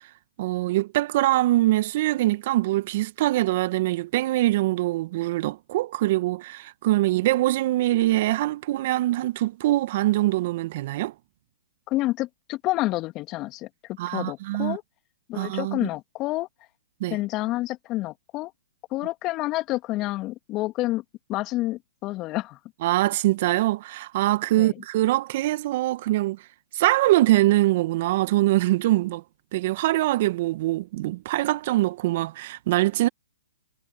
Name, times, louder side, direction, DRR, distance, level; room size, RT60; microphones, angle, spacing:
voice 1, 0.4-11.1 14.0-14.8 15.3-15.9 17.0-17.2 22.8-26.4 26.7-29.2 29.5-33.1, right 17 dB, 50° right, 1.9 m, -23 dB
voice 2, 11.9-13.7 14.1-14.8 15.3-16.5 17.1-18.5 18.9-21.0 21.3-22.6 24.6-24.7, left 18 dB, 30° left, 2.5 m, -28 dB
hypercardioid pair, 125°, 0 cm